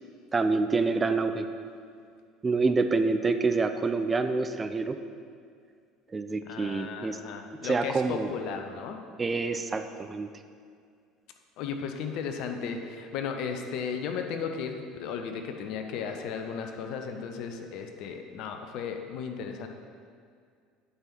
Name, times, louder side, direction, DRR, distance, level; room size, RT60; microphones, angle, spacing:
voice 1, 0.3-1.5 2.4-5.0 6.1-7.2 7.6-8.3 9.2-10.3, right 3 dB, 25° right, 9 dB, 0.4 m, -27 dB
voice 2, 6.5-9.0 11.6-19.7, left 6 dB, 55° left, 5 dB, 0.7 m, -35 dB
8.8 x 5.3 x 4.4 m, 2.2 s
figure-of-eight pair, 65°, 0 cm